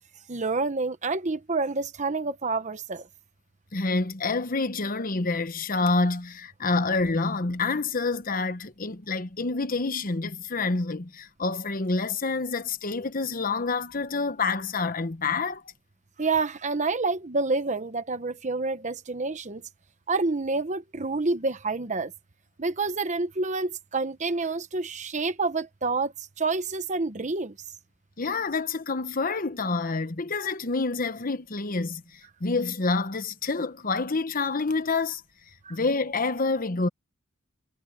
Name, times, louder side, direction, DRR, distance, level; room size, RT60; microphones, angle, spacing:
voice 1, 0.3-3.1 16.2-19.6 20.1-22.1 22.6-27.5 35.6-35.8, right 3 dB, 35° right, 1.0 m, -28 dB
voice 2, 3.7-15.6 28.2-35.2 35.7-36.9, left 3 dB, 45° left, 1.1 m, -27 dB
head